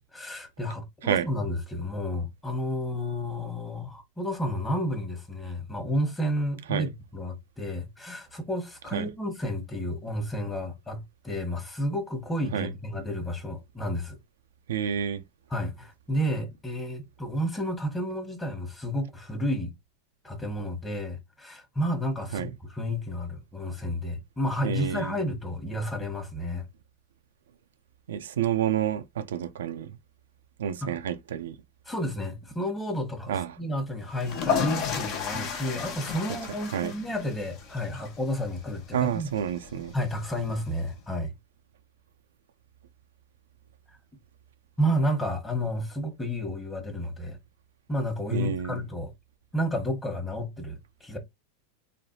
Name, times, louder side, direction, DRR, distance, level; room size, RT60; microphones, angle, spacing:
voice 1, 0.0-14.2 15.5-19.7 20.2-26.7 30.8-31.0 31.9-39.3 39.9-41.3 44.8-47.4 47.9-49.1 49.5-51.2, equal, 15° left, 1.1 m, -31 dB
voice 2, 14.7-15.2 22.3-22.5 24.6-25.2 28.1-30.0 30.6-31.5 33.3-33.6 36.7-36.9 38.9-39.9 48.3-48.8, right 9 dB, 80° right, 0.3 m, -29 dB
sound 1, 34.1-40.9, left 6 dB, 50° left, 0.8 m, -34 dB
3.1 x 2.3 x 2.7 m
hypercardioid pair, 105°, 0 cm